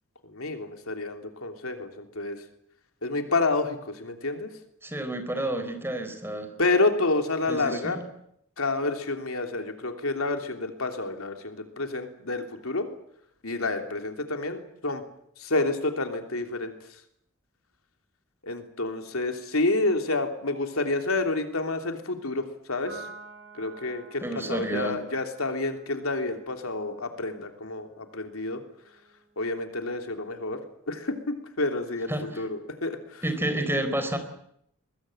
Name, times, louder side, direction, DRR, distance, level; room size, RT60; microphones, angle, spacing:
voice 1, 0.2-2.4 3.0-4.5 6.6-8.0 8.6-12.9 13.4-15.0 15.4-16.7 18.4-23.1 23.5-28.6 29.4-30.6 30.9-32.1 32.4-33.2, left 2 dB, 85° left, 5 dB, 3.2 m, -29 dB
voice 2, 4.8-6.5 7.5-8.0 24.2-25.0 32.1-32.4 33.2-34.2, right 1 dB, 10° right, 8 dB, 4.0 m, -30 dB
Piano, 22.9-29.6, right 4 dB, 70° right, 5.9 m, -50 dB
22.5 x 22.0 x 8.9 m, 0.72 s
head